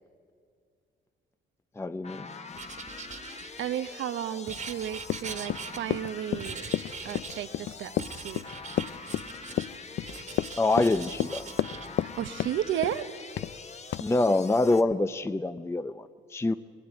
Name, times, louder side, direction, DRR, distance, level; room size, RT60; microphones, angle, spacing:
voice 1, 1.8-2.3 10.6-11.5 14.0-16.5, left 2 dB, 15° left, 10 dB, 0.5 m, -26 dB
sound 1, 2.0-14.8, left 4 dB, 35° left, 1.2 m, -44 dB
Writing, 2.5-3.9 4.5-6.1 6.4-7.5 8.0-9.7 10.0-11.9, right 5 dB, 40° right, 1.6 m, -42 dB
voice 2, 3.3-6.7 7.0-8.4 12.0-13.1, right 10 dB, 75° right, 13 dB, 0.9 m, -33 dB
Run, 5.0-12.1 12.4-13.0 13.4-13.6 13.9-14.1, left 13 dB, 65° left, 0.5 m, -31 dB
21.5 x 15.5 x 9.8 m, 2.3 s
cardioid pair, 90°, 20 cm